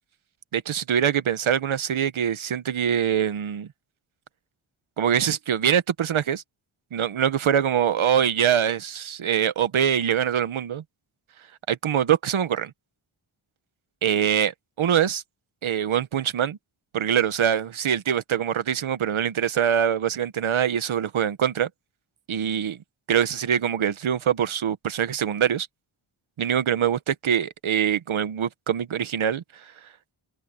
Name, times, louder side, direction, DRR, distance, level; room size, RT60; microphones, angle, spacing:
voice 1, 0.5-3.7 5.0-6.4 6.9-10.8 11.7-12.7 14.0-14.5 14.8-15.2 15.6-16.6 16.9-21.7 22.3-22.8 23.1-25.7 26.4-29.4, right 9 dB, 75° right, 1.1 m, -24 dB
open air
wide cardioid pair, 165°, 49 cm